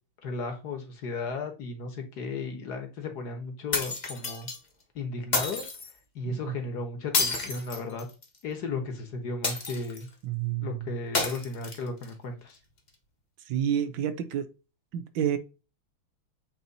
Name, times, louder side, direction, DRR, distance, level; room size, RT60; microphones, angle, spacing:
voice 1, 0.2-4.5 4.9-5.7 6.1-8.1 8.4-10.1 10.6-12.6, left 3 dB, 55° left, 1.5 m, -35 dB
sound 1, 3.7-4.6 5.3-5.9 7.1-8.4 9.4-10.1 11.1-12.1, left 3 dB, 30° left, 0.9 m, -30 dB
voice 2, 10.2-10.9 13.5-14.5 14.9-15.4, right 9 dB, 75° right, 1.5 m, -29 dB
8.0 x 3.0 x 4.0 m
omnidirectional pair, 2.2 m